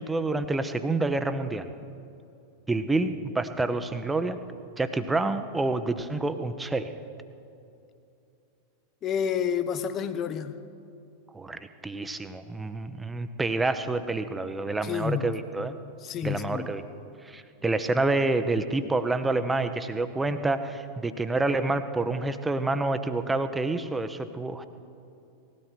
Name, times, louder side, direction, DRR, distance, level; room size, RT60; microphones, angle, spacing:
voice 1, 0.0-1.7 2.7-4.4 4.8-6.9 11.3-15.7 16.2-16.8 17.2-24.6, right 2 dB, 10° right, 10 dB, 0.9 m, -28 dB
voice 2, 9.0-10.5 14.8-15.2 16.0-16.7, left 8 dB, 30° left, 12 dB, 0.9 m, -29 dB
19.5 x 16.0 x 4.5 m, 2.7 s
figure-of-eight pair, 90°, 0 cm